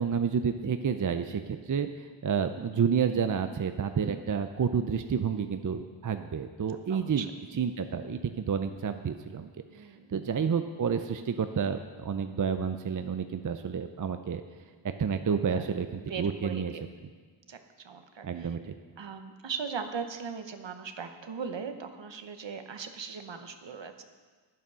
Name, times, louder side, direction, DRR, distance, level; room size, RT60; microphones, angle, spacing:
voice 1, 0.0-7.3 7.5-9.5 9.8-14.4 15.0-16.7 18.2-18.7, right 7 dB, 45° right, 8 dB, 0.5 m, -30 dB
voice 2, 6.7-7.3 9.7-10.1 15.3-15.7 16.1-16.8 17.5-18.6 19.0-24.0, right 6 dB, 70° right, 7 dB, 1.0 m, -39 dB
11.5 x 9.1 x 6.2 m, 1.5 s
wide cardioid pair, 100°, 46 cm